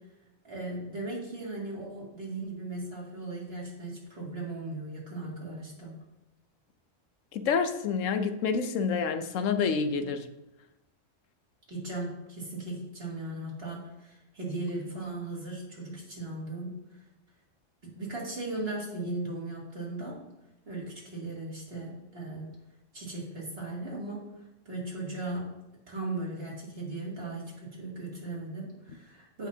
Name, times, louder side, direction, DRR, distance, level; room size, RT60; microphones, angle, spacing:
voice 1, 0.4-6.0 11.7-16.7 17.8-20.2 20.7-22.5 22.9-24.3 24.6-25.5 25.9-29.5, right 2 dB, 50° right, -5 dB, 2.8 m, -37 dB
voice 2, 7.3-10.2, left 5 dB, 85° left, 9 dB, 1.1 m, -28 dB
15.5 x 5.8 x 2.8 m, 0.96 s
omnidirectional pair, 1.3 m